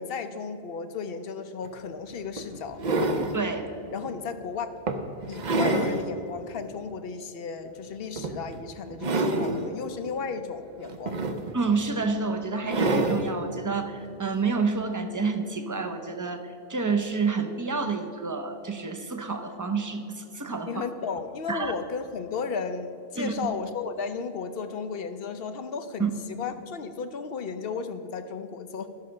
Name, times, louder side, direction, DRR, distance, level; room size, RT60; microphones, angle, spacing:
voice 1, 0.0-2.8 3.9-4.7 5.3-11.2 20.7-26.1 26.4-28.9, left 5 dB, 70° left, 10 dB, 0.9 m, -34 dB
sound 1, 1.6-1.7 2.4-3.4 4.1-4.2 4.9-6.0 6.5-6.6 8.2-8.5 8.9-9.7 10.8-11.7 12.7-13.3 14.6-14.7, right 2 dB, 50° right, 0.8 m, -27 dB
voice 2, 3.3-3.7 11.5-20.8 21.5-21.7 23.2-23.5 26.0-26.1, right 4 dB, 20° right, 6 dB, 0.7 m, -29 dB
13.0 x 5.7 x 6.4 m, 2.8 s
omnidirectional pair, 1.0 m